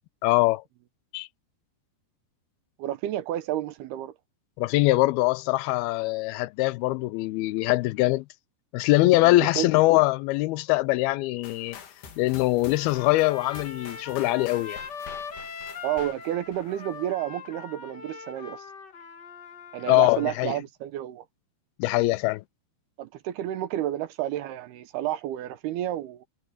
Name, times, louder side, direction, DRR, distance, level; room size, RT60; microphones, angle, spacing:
voice 1, 0.2-0.6 1.1-1.3 4.6-8.2 8.7-11.8 12.2-14.8 19.9-20.5 21.8-22.4, left 19 dB, 90° left, 2.2 m, -23 dB
voice 2, 2.8-4.1 9.2-9.7 15.8-18.7 19.7-21.2 23.0-26.2, right 13 dB, 75° right, 2.7 m, -31 dB
sound 1, 11.4-17.3, left 7 dB, 65° left, 4.4 m, -47 dB
Trumpet, 12.7-20.4, left 5 dB, 40° left, 1.5 m, -41 dB
omnidirectional pair, 5.0 m